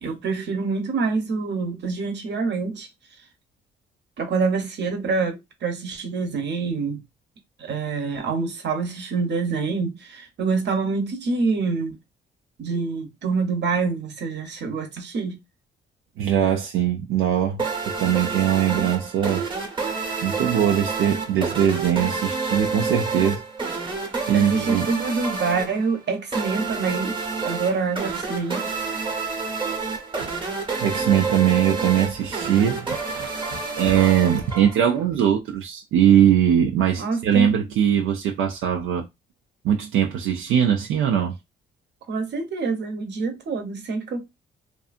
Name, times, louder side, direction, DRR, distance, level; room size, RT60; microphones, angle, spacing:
voice 1, 0.0-2.9 4.2-7.0 7.6-11.9 12.6-15.4 24.3-27.2 27.4-28.7 37.0-37.6 42.1-44.3, right 4 dB, 60° right, 0.9 m, -26 dB
voice 2, 16.2-19.5 20.2-23.4 24.3-24.9 30.8-39.1 39.6-41.4, right 9 dB, 85° right, 0.5 m, -21 dB
sound 1, 17.6-35.0, right 4 dB, 25° right, 0.9 m, -29 dB
2.6 x 2.5 x 2.4 m
cardioid pair, 90°, 20 cm